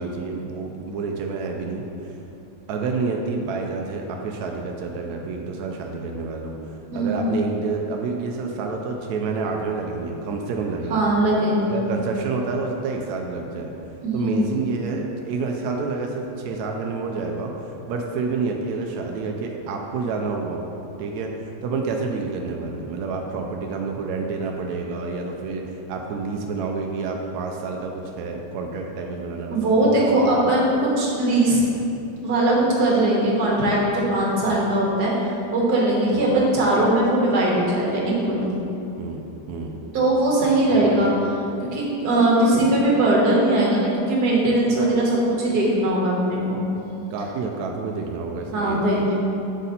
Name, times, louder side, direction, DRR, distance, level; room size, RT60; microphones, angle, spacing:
voice 1, 0.0-2.2 2.7-11.1 11.7-13.7 14.1-20.7 21.0-30.2 36.1-36.3 39.0-39.2 39.5-39.8 40.7-41.1 47.1-48.8, right 4 dB, 75° right, 2 dB, 0.8 m, -29 dB
voice 2, 6.9-7.3 10.9-11.8 14.0-14.4 29.5-31.6 32.2-35.1 35.5-38.5 39.9-41.1 41.6-46.6 48.5-49.1, right 1 dB, 60° right, -4 dB, 1.5 m, -20 dB
6.1 x 3.9 x 4.2 m, 2.9 s
omnidirectional pair, 2.1 m